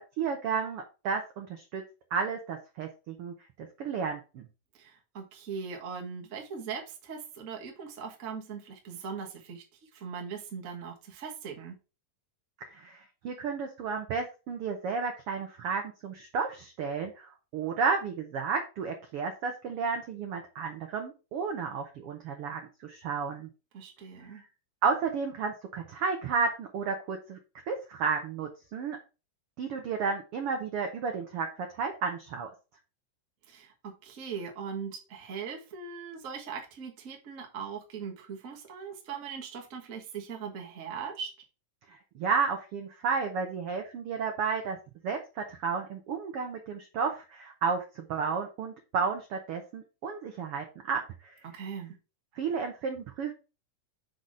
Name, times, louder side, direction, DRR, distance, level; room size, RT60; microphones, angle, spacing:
voice 1, 0.2-1.8 2.1-4.4 12.7-23.5 24.3-24.4 24.8-27.4 27.7-29.0 29.6-31.5 31.7-32.5 41.9-44.8 45.0-51.3 52.3-53.3, right 5 dB, 85° right, 3 dB, 1.2 m, -32 dB
voice 2, 4.7-11.8 23.7-24.4 33.5-41.3 51.5-51.9, right 6 dB, 60° right, 1 dB, 0.8 m, -40 dB
6.0 x 4.0 x 4.8 m, 0.31 s
omnidirectional pair, 3.9 m